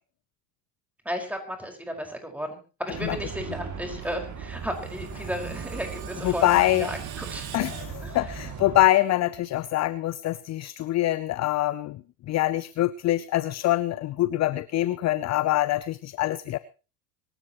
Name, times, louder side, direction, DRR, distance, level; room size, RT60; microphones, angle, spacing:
voice 1, 1.1-7.4 8.0-8.4, equal, 5° right, 3 dB, 5.4 m, -34 dB
sound 1, 2.9-8.8, right 6 dB, 35° right, 2.8 m, -38 dB
Screech, 4.3-8.6, right 8 dB, 70° right, 3.1 m, -45 dB
voice 2, 6.2-6.9 7.5-12.0 12.3-16.6, left 15 dB, 35° left, 17 dB, 0.7 m, -24 dB
25.0 x 13.0 x 3.1 m, 0.34 s
hypercardioid pair, 75°, 49 cm